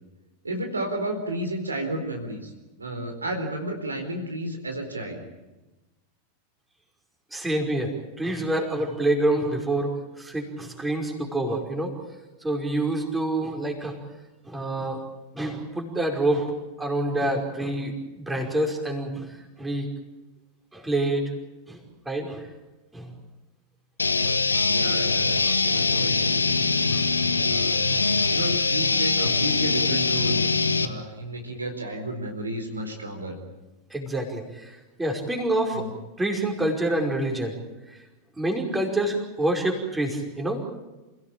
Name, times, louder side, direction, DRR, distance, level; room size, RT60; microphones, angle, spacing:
voice 1, 0.4-2.5 2.8-5.2 24.7-26.4 27.5-30.4 30.8-33.4 35.7-35.9, right 1 dB, 80° right, 4 dB, 4.3 m, -32 dB
voice 2, 7.3-11.9 12.4-14.0 14.4-15.0 15.3-16.5 16.8-19.3 19.6-19.9 20.7-21.3 21.7-21.8 22.1-22.5 22.9-23.1 24.3-24.4 25.4-25.6 25.9-26.1 26.9-27.1 27.9-28.1 33.9-35.9 36.2-37.6 37.9-38.0 38.4-40.6, right 1 dB, 10° right, 2 dB, 5.2 m, -27 dB
sound 1, 24.0-30.9, left 4 dB, 80° left, 1.2 m, -23 dB
28.0 x 17.5 x 8.8 m, 1.1 s
figure-of-eight pair, 90°, 0 cm